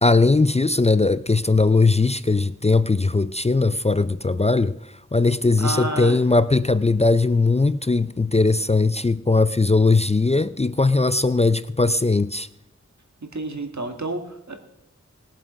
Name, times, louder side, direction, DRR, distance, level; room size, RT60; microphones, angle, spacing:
voice 1, 0.0-4.8 5.1-12.5, left 3 dB, 20° left, 0.4 m, -19 dB
voice 2, 5.6-6.2 13.2-14.6, right 2 dB, 70° right, 1.8 m, -30 dB
20.0 x 7.4 x 5.1 m
wide cardioid pair, 40°, 29 cm